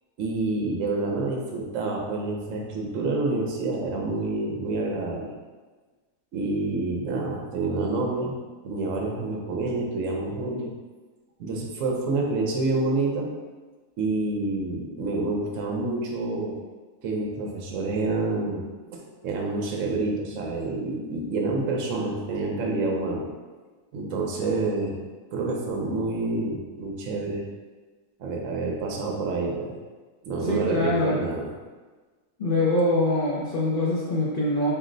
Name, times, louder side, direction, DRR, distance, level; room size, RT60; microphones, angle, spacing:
voice 1, 0.2-5.3 6.3-8.3 8.6-10.7 11.4-13.3 14.0-16.5 17.0-18.6 18.9-23.3 23.9-25.0 25.3-27.4 28.2-29.8 30.2-31.5, right 3 dB, 60° right, 0 dB, 0.9 m, -28 dB
voice 2, 30.5-31.2 32.4-34.7, left 2 dB, 80° left, -6 dB, 0.4 m, -24 dB
4.4 x 2.1 x 3.8 m, 1.3 s
omnidirectional pair, 1.7 m